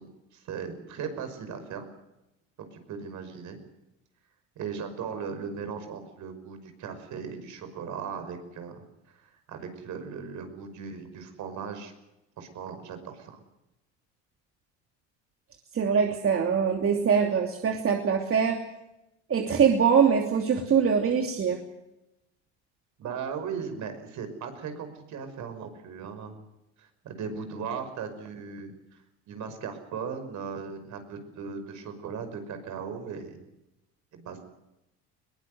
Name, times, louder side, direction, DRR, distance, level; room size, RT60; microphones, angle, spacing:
voice 1, 0.0-1.9 2.6-3.6 4.6-11.9 12.4-13.4 23.0-26.4 26.8-29.0 29.3-33.4 34.1-34.5, right 6 dB, 60° right, 8 dB, 5.7 m, -38 dB
voice 2, 15.7-18.6 19.3-21.6, right 6 dB, 40° right, 3 dB, 3.0 m, -23 dB
22.0 x 19.5 x 8.0 m, 0.92 s
supercardioid pair, 80°, 34 cm